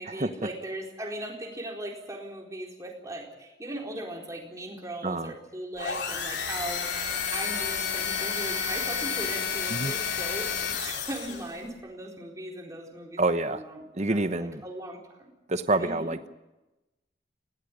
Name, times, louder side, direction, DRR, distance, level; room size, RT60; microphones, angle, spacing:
voice 1, 0.0-10.5 10.8-15.3 15.8-16.1, right 1 dB, 20° right, 0 dB, 4.2 m, -39 dB
sound 1, 5.8-11.6, left 6 dB, 75° left, 3.6 m, -31 dB
voice 2, 13.2-13.6 13.9-14.6 15.5-16.3, right 2 dB, 40° right, 10 dB, 0.9 m, -27 dB
19.5 x 17.5 x 9.9 m, 1.0 s
head